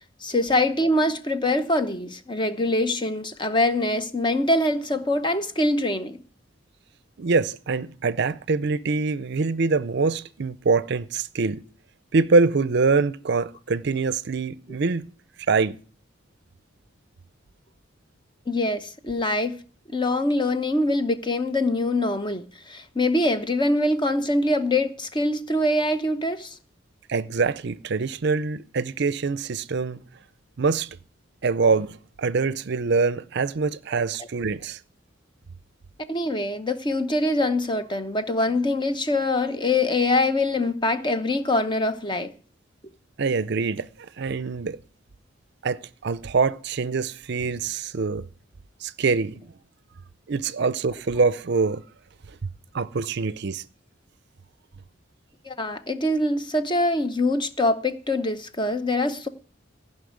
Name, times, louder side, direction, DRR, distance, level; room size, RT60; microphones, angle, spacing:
voice 1, 0.2-6.2 18.5-19.6 19.9-26.5 36.1-42.3 55.4-59.3, left 1 dB, 25° left, 0.8 m, -24 dB
voice 2, 7.2-11.6 12.1-15.1 15.5-15.8 27.1-30.0 30.6-30.9 31.4-34.8 43.2-44.8 45.6-48.2 48.8-49.5 50.3-51.8 52.7-53.6, right 4 dB, 55° right, 0.5 m, -24 dB
15.5 x 5.5 x 9.3 m
head